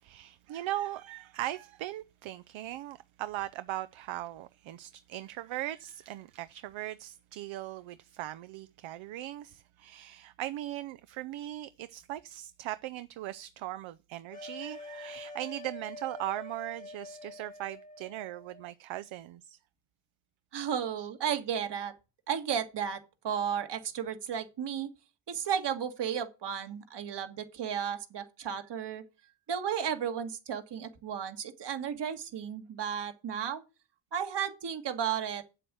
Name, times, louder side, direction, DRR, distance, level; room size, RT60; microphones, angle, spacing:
voice 1, 0.0-19.6 21.0-21.1 29.2-29.3, right 14 dB, 75° right, 0.6 m, -39 dB
sound 1, 14.3-18.7, left 2 dB, 15° left, 1.2 m, -46 dB
voice 2, 20.5-21.9 22.3-24.9 25.3-29.0 29.5-33.6 34.1-35.4, right 8 dB, 60° right, 1.8 m, -34 dB
7.8 x 7.7 x 6.1 m
cardioid pair, 105°, 46 cm